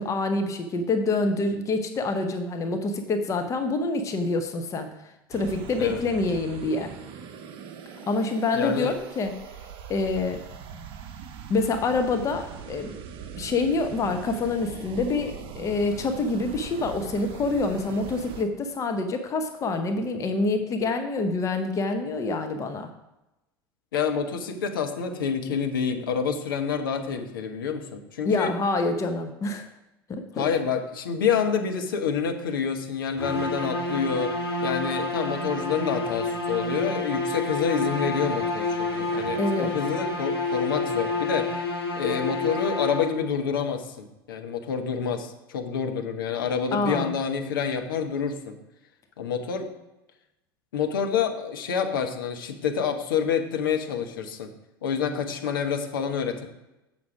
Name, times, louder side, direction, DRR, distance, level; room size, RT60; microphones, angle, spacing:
voice 1, 0.0-4.9 5.3-6.9 8.1-9.4 9.9-10.4 11.5-13.0 13.4-22.9 28.2-29.7 30.1-30.5 39.4-39.7 46.7-47.1, left 3 dB, 25° left, 7 dB, 0.8 m, -26 dB
sound 1, 5.3-18.5, right 7 dB, 45° right, 0.9 m, -41 dB
voice 2, 8.5-8.9 23.9-28.5 30.3-34.3 34.6-41.6 42.0-48.6 49.2-49.7 50.7-54.5 54.8-56.5, left 6 dB, 65° left, 5 dB, 1.0 m, -28 dB
sound 2, 33.2-43.4, left 3 dB, 80° left, 1.5 m, -29 dB
7.5 x 6.1 x 4.9 m, 0.95 s
figure-of-eight pair, 75°, 12 cm